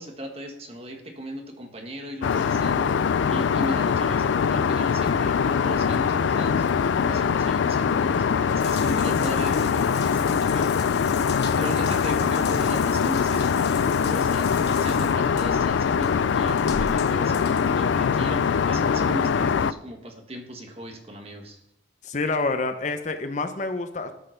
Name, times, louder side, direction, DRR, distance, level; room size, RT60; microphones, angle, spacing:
voice 1, 0.0-2.9 3.3-6.7 7.0-10.7 11.5-21.6, right 1 dB, 30° right, 4 dB, 1.4 m, -37 dB
Aircraft, 2.2-19.7, left 6 dB, 80° left, 0.4 m, -23 dB
Water tap faucet / Bathtub (filling or washing) / Drip, 8.6-18.4, left 6 dB, 60° left, 1.2 m, -40 dB
voice 2, 22.0-24.1, left 3 dB, 40° left, 8 dB, 0.8 m, -27 dB
12.5 x 5.6 x 5.8 m, 0.77 s
head